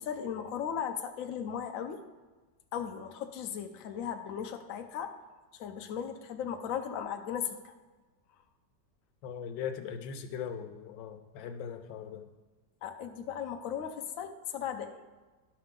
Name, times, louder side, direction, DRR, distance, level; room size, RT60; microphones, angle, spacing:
voice 1, 0.0-2.0 2.7-5.2 5.6-7.7 12.8-15.0, left 8 dB, 60° left, 5 dB, 1.0 m, -37 dB
voice 2, 9.2-12.2, left 7 dB, 90° left, 8 dB, 1.4 m, -39 dB
11.5 x 5.8 x 3.7 m, 1.3 s
omnidirectional pair, 2.0 m